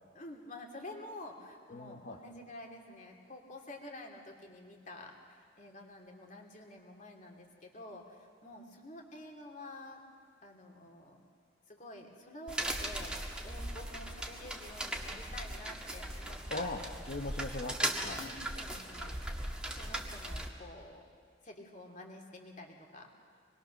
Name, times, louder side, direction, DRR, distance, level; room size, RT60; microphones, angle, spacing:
voice 1, 0.1-10.0 10.4-11.2 11.7-16.7 18.1-19.2 19.7-21.1 21.4-23.1, left 1 dB, 45° left, 1 dB, 2.8 m, -49 dB
voice 2, 1.7-2.2 16.5-18.3, left 2 dB, 60° left, 1 dB, 1.3 m, -40 dB
sound 1, 12.5-20.5, right 1 dB, 5° right, 1.7 m, -38 dB
25.5 x 21.0 x 6.6 m, 2.1 s
head